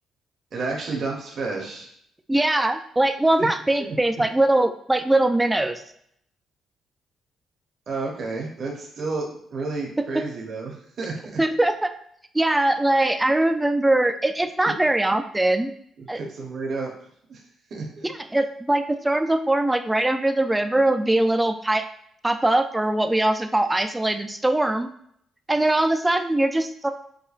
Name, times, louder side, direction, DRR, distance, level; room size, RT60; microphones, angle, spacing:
voice 1, 0.5-1.9 3.4-3.5 3.9-4.0 7.9-11.4 16.0-16.9 17.3-17.4 17.7-18.1, right 3 dB, 55° right, -1 dB, 0.8 m, -31 dB
voice 2, 2.3-5.8 10.0-10.2 11.4-11.9 12.3-15.7 16.1-16.2 18.0-21.9 22.2-24.9 25.5-26.9, right 1 dB, 10° right, 7 dB, 0.3 m, -21 dB
4.9 x 2.2 x 2.4 m, 0.69 s
cardioid pair, 90°, 0 cm